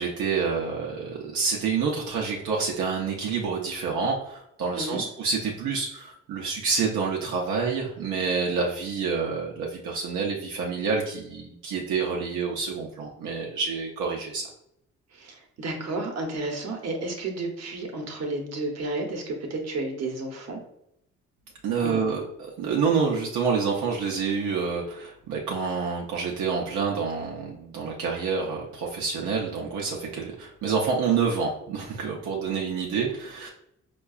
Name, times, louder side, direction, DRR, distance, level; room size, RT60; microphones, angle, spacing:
voice 1, 0.0-14.5 21.6-33.5, right 5 dB, 85° right, -2 dB, 0.6 m, -28 dB
voice 2, 15.1-20.6 21.8-22.0, right 2 dB, 60° right, 2 dB, 0.9 m, -32 dB
4.5 x 2.3 x 2.3 m, 0.78 s
cardioid pair, 90°, 30 cm